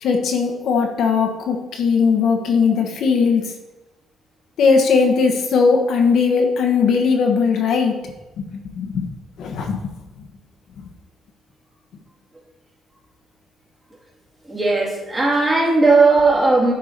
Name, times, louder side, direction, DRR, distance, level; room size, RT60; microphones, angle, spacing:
voice 1, 0.0-3.5 4.6-8.0 8.4-9.1 9.4-9.8, left 5 dB, 65° left, 3 dB, 1.3 m, -18 dB
voice 2, 14.5-16.7, right 3 dB, 15° right, -4 dB, 2.4 m, -16 dB
10.0 x 4.6 x 5.2 m, 1.0 s
cardioid pair, 145°, 0 cm